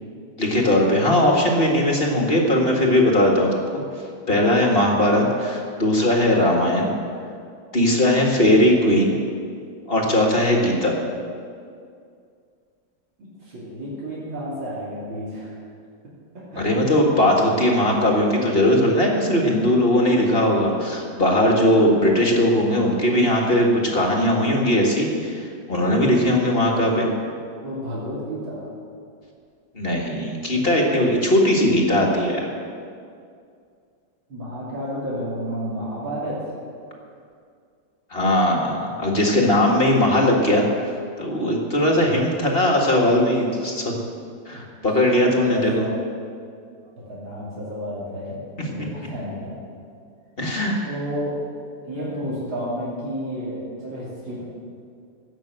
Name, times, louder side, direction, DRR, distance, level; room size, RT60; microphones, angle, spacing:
voice 1, 0.4-3.6 4.3-6.9 7.7-9.2 9.9-10.9 16.6-27.1 29.7-32.5 38.1-40.9 41.2-43.9 44.5-45.8 50.4-50.8, left 1 dB, 30° left, 0 dB, 1.8 m, -19 dB
voice 2, 13.2-15.6 16.3-16.8 27.6-28.7 32.5-32.7 34.3-36.4 44.5-44.6 45.0-46.0 47.1-49.6 50.8-51.3 51.8-54.4, equal, 75° right, -8 dB, 3.6 m, -31 dB
16.5 x 6.5 x 7.9 m, 2.3 s
omnidirectional pair, 2.2 m